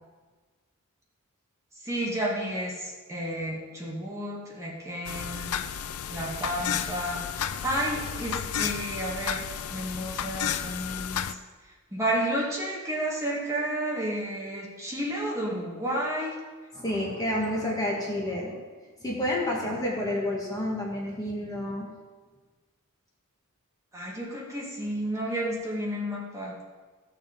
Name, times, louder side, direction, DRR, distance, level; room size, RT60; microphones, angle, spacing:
voice 1, 1.8-5.6 6.1-11.3 11.9-16.3 23.9-26.5, right 1 dB, 15° right, -4 dB, 2.1 m, -31 dB
sound 1, 5.1-11.3, left 9 dB, 85° left, 0.5 m, -32 dB
voice 2, 16.7-18.6 19.0-21.9, left 1 dB, 15° left, -3 dB, 1.9 m, -29 dB
15.0 x 6.8 x 5.3 m, 1.4 s
head